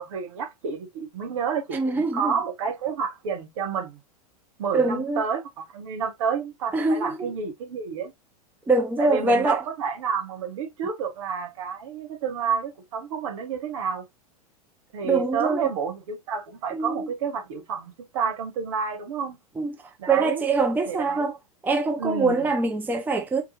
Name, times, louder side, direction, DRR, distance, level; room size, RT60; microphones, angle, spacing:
voice 1, 0.0-4.0 4.6-8.1 9.0-14.0 14.9-19.4 20.0-20.4 20.9-21.3 22.0-22.5, right 6 dB, 55° right, 1.4 m, -30 dB
voice 2, 1.7-2.3 4.7-5.2 6.7-7.3 8.7-9.6 15.0-15.6 16.7-17.1 19.6-19.8 20.1-21.4 21.6-23.4, right 3 dB, 10° right, 0.6 m, -23 dB
4.4 x 3.0 x 2.9 m
figure-of-eight pair, 90°, 20 cm